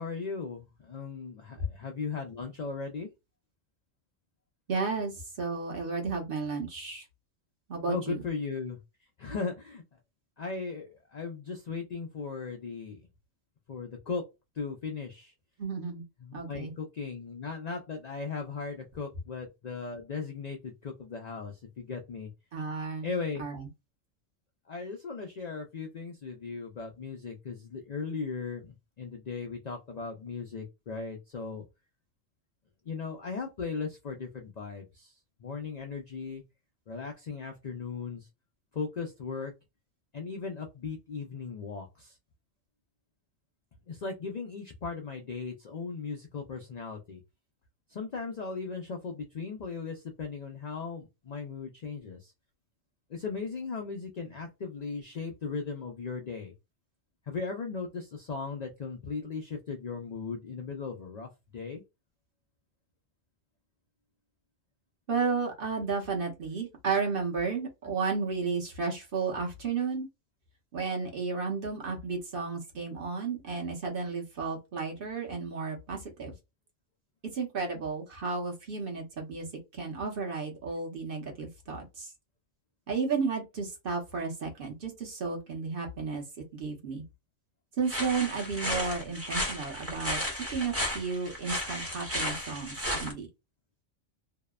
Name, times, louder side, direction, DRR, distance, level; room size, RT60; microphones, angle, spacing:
voice 1, 0.0-3.1 7.9-8.8 9.2-9.8 10.4-13.0 13.7-14.2 14.5-15.3 16.2-22.3 23.0-23.4 24.7-31.6 32.8-36.4 36.9-38.3 38.7-39.5 40.1-42.2 43.9-47.2 47.9-52.3 53.1-56.5 57.2-61.8, left 4 dB, 65° left, 0.4 m, -37 dB
voice 2, 4.7-7.0 7.7-8.2 15.6-16.0 16.3-16.7 22.5-23.1 23.4-23.7 65.1-70.1 70.7-76.3 77.3-79.5 79.7-82.1 82.9-86.2 86.5-87.0 87.8-93.3, right 4 dB, 50° right, 1.0 m, -33 dB
sound 1, 87.9-93.1, equal, 15° right, 0.6 m, -34 dB
2.7 x 2.0 x 2.2 m
omnidirectional pair, 1.3 m